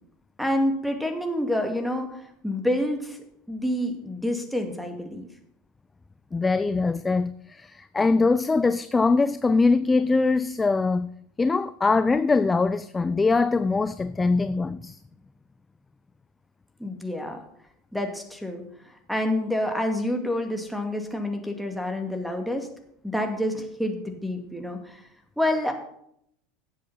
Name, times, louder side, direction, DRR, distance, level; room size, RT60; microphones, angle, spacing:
voice 1, 0.4-3.2 3.5-5.3 16.8-17.4 17.9-18.6 19.1-22.7 23.0-25.0 25.4-25.7, left 1 dB, ahead, 2.2 m, -28 dB
voice 2, 6.3-11.1 11.4-15.0, left 3 dB, 15° left, 0.4 m, -22 dB
17.5 x 7.7 x 4.2 m
figure-of-eight pair, 75°, 0 cm